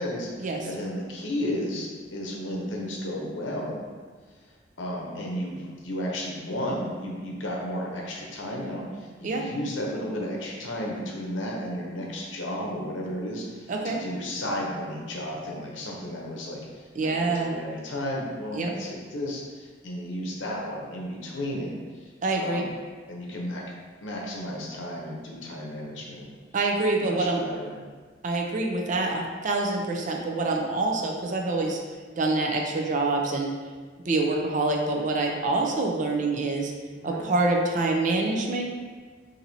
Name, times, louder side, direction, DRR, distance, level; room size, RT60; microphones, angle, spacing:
voice 1, 0.0-3.8 4.8-21.7 22.0-22.7 23.1-23.6 24.0-26.3 27.0-27.8 36.9-37.3, equal, 85° left, -1 dB, 0.7 m, -33 dB
voice 2, 13.7-14.0 17.0-17.6 18.5-18.7 22.2-22.6 26.5-27.4 28.2-31.8 32.2-33.5 34.1-36.7 37.0-38.6, right 2 dB, 45° right, 0 dB, 0.4 m, -26 dB
4.4 x 2.6 x 2.7 m, 1.5 s
head